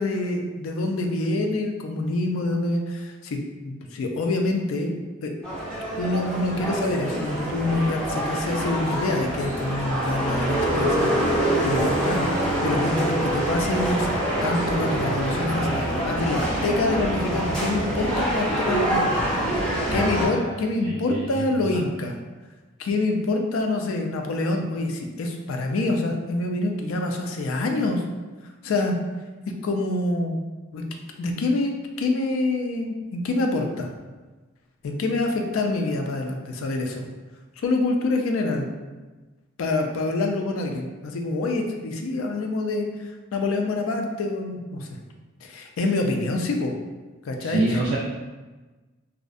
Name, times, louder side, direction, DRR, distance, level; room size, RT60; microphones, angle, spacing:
voice 1, 0.0-4.9 5.2-5.3 6.0-12.2 12.6-19.3 19.9-22.2 22.8-28.0 28.6-29.0 29.6-30.4 30.7-30.8 31.2-33.9 34.8-37.0 37.6-38.7 39.6-44.9 45.4-46.7 47.2-48.0, left 2 dB, 70° left, 3 dB, 0.3 m, -26 dB
sound 1, 5.4-20.3, right 1 dB, 5° left, 0.6 m, -25 dB
voice 2, 19.9-20.5 20.8-21.3 47.4-48.0, right 2 dB, 90° right, -3 dB, 0.3 m, -28 dB
2.5 x 2.0 x 2.4 m, 1.2 s
head